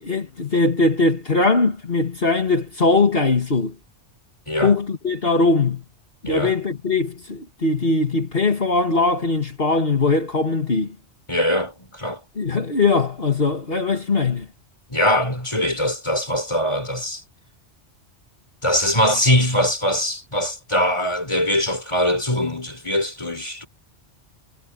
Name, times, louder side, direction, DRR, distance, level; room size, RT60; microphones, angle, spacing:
voice 1, 0.0-3.8 4.6-5.8 6.2-11.0 12.4-14.5, left 3 dB, 55° left, 2.6 m, -20 dB
voice 2, 11.3-12.2 14.9-17.2 18.6-23.7, equal, 25° left, 5.0 m, -22 dB
omnidirectional pair, 1.2 m